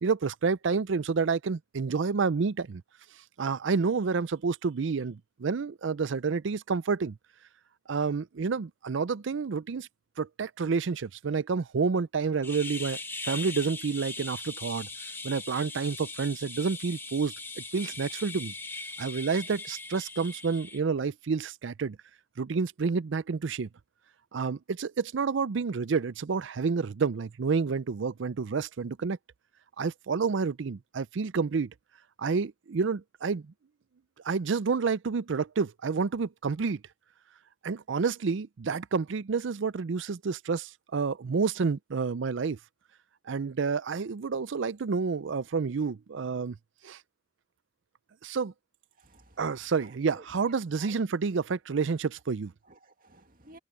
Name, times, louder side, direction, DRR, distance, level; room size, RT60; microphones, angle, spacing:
voice 1, 0.0-2.8 3.4-7.2 7.9-9.9 10.2-13.0 13.2-14.9 15.2-18.5 19.0-22.0 22.4-23.7 24.3-29.2 29.8-31.7 32.2-33.5 34.2-36.8 37.6-42.6 43.3-46.6 46.8-47.0 48.2-48.5 49.4-52.5, right 5 dB, 65° right, 0.5 m, -29 dB
sound 1, 12.4-20.8, left 3 dB, 10° left, 1.5 m, -40 dB
voice 2, 49.0-49.5 49.8-50.3 50.8-50.9 52.7-53.6, right 2 dB, 45° right, 2.4 m, -53 dB
head